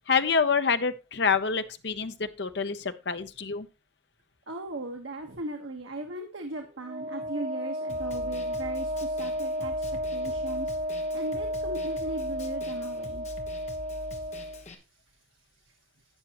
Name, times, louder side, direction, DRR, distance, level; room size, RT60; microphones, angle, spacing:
voice 1, 0.1-3.7, left 5 dB, 55° left, 10 dB, 0.7 m, -27 dB
voice 2, 4.5-10.7 11.1-13.3 14.1-14.2, right 2 dB, 75° right, 3 dB, 1.3 m, -38 dB
Wind instrument woodwind instrument, 6.8-14.6, equal, 35° right, 0.5 m, -33 dB
Snare drum, 7.9-14.7, left 1 dB, 35° left, 1.2 m, -44 dB
12.0 x 8.9 x 3.0 m, 0.27 s
head